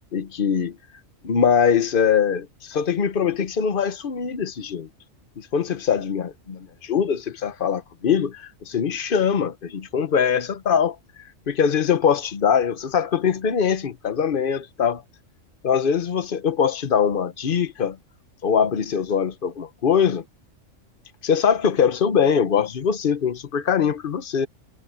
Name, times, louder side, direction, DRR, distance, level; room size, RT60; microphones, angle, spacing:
voice 1, 0.1-0.8 1.2-4.9 5.4-11.0 11.5-15.0 15.6-18.0 18.4-20.2 21.2-24.5, left 7 dB, 45° left, 1.1 m, -22 dB
omnidirectional pair, 1.3 m